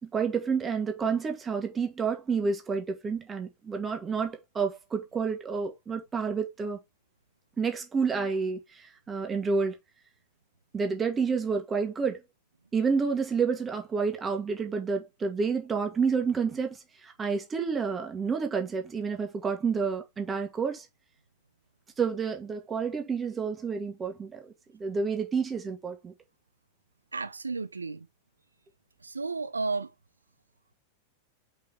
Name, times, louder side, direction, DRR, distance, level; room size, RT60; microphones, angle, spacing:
voice 1, 0.0-6.8 7.6-9.8 10.7-12.2 12.7-20.9 22.0-26.1, right 5 dB, 20° right, 2.2 m, -29 dB
voice 2, 27.1-28.1 29.0-29.9, right 4 dB, 80° right, 0.3 m, -32 dB
5.9 x 5.5 x 3.6 m
figure-of-eight pair, 90°, 0 cm